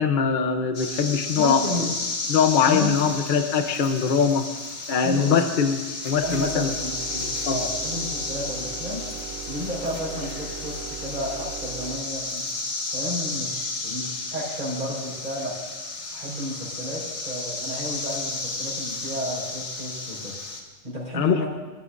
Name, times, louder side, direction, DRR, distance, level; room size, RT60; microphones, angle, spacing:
voice 1, 0.0-1.9 2.3-4.5 4.9-5.8 6.0-6.7 7.1-7.6 21.1-21.5, left 6 dB, 50° left, 7 dB, 0.9 m, -22 dB
sound 1, 0.7-20.6, left 3 dB, 75° left, 1.8 m, -33 dB
voice 2, 1.3-1.9 2.6-2.9 4.9-5.4 6.2-6.9 7.5-9.0 9.5-12.4 12.9-15.5 16.1-20.4 20.8-21.5, left 1 dB, 35° right, -7 dB, 4.5 m, -32 dB
sound 2, 6.1-12.1, right 9 dB, 65° right, 1.0 m, -39 dB
21.5 x 13.0 x 2.5 m, 1.3 s
omnidirectional pair, 1.2 m